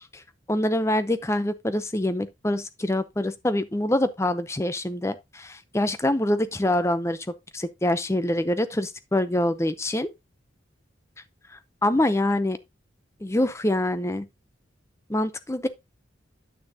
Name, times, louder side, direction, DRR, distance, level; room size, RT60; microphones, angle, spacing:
voice 1, 0.5-7.3 7.5-10.1 11.8-12.6 13.2-14.3 15.1-15.7, left 1 dB, 15° left, 0.6 m, -25 dB
9.4 x 6.3 x 2.8 m
head